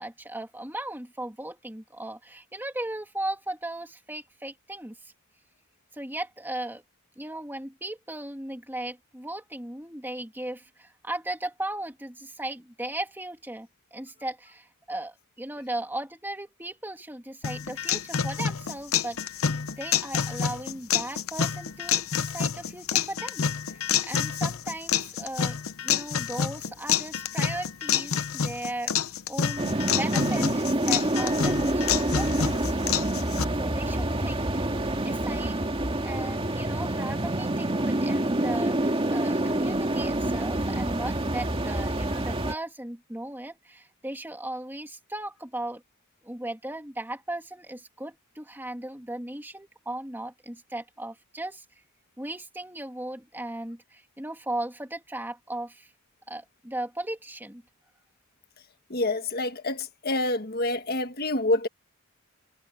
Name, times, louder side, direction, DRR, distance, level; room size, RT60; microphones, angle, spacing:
voice 1, 0.0-5.1 5.9-6.8 7.2-19.4 19.8-28.9 29.3-29.7 29.9-32.8 33.6-34.5 35.0-35.6 36.0-45.8 46.2-51.6 52.2-55.9 56.3-57.6, right 1 dB, 10° right, 2.6 m, -37 dB
sound 1, 17.4-33.5, left 7 dB, 70° left, 0.8 m, -28 dB
sound 2, 29.6-42.5, right 1 dB, 25° right, 2.0 m, -27 dB
voice 2, 58.9-61.7, left 2 dB, 45° left, 1.6 m, -27 dB
head